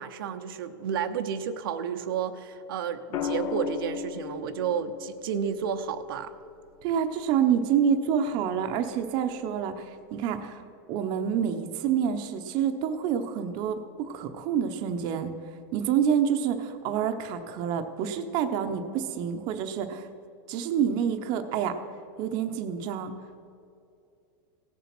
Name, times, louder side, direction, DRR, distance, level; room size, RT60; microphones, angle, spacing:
voice 1, 0.0-6.3, right 7 dB, 80° right, 7 dB, 0.8 m, -31 dB
sound 1, 3.1-7.3 9.0-9.3, left 8 dB, 35° left, 0.6 m, -37 dB
voice 2, 6.8-10.6 10.9-15.3 15.7-20.1 20.5-21.8 22.2-23.1, right 8 dB, 40° right, 6 dB, 0.8 m, -27 dB
17.0 x 7.2 x 6.0 m, 2.6 s
supercardioid pair, 160°, 12 cm